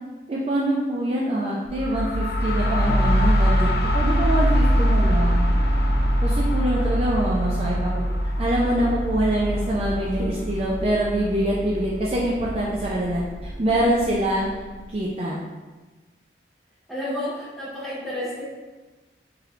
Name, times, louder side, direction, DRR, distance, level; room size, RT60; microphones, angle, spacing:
voice 1, 0.3-3.7 3.9-5.5 6.2-8.0 8.4-14.5 14.9-15.4, right 1 dB, 35° right, -5 dB, 0.4 m, -24 dB
sound 1, 1.6-13.3, equal, 65° left, 0.5 m, -23 dB
sound 2, 3.8-15.1, equal, 90° right, 1.1 m, -41 dB
voice 2, 16.9-18.4, left 1 dB, ahead, -9 dB, 1.1 m, -31 dB
4.8 x 3.1 x 2.5 m, 1.2 s
head